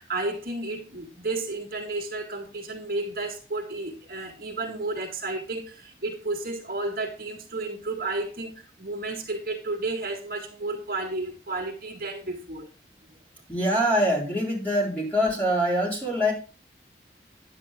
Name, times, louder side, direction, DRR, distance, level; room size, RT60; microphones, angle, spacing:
voice 1, 0.0-12.7, right 2 dB, 55° right, 1.8 m, -32 dB
voice 2, 13.5-16.3, equal, 10° left, 4.0 m, -24 dB
9.6 x 8.3 x 3.6 m
head